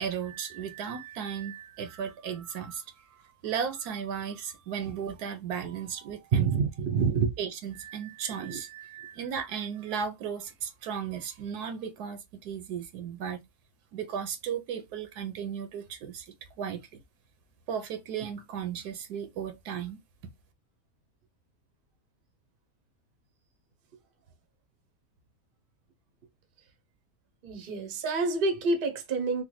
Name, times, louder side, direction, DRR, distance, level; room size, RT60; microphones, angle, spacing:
voice 1, 0.0-6.6 7.4-13.4 13.9-16.8 17.7-20.0, right 7 dB, 80° right, 1.2 m, -35 dB
voice 2, 6.3-7.3 8.4-8.6 27.4-29.4, right 4 dB, 50° right, 0.7 m, -27 dB
3.2 x 2.2 x 3.0 m
omnidirectional pair, 1.6 m